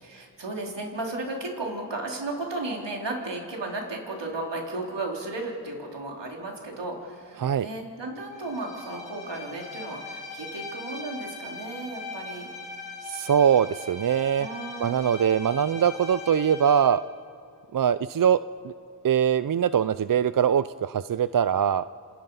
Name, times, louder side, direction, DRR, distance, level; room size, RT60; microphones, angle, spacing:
voice 1, 0.0-12.5 14.4-15.2, right 2 dB, 75° right, 0 dB, 3.7 m, -34 dB
Bowed string instrument, 8.3-17.0, left 3 dB, 90° left, 4.5 m, -40 dB
voice 2, 13.0-14.5 14.8-17.0 17.7-18.4 18.6-18.7 19.0-21.9, right 8 dB, 50° right, 15 dB, 0.5 m, -22 dB
27.5 x 27.5 x 5.5 m, 2.7 s
wide cardioid pair, 65°, 43 cm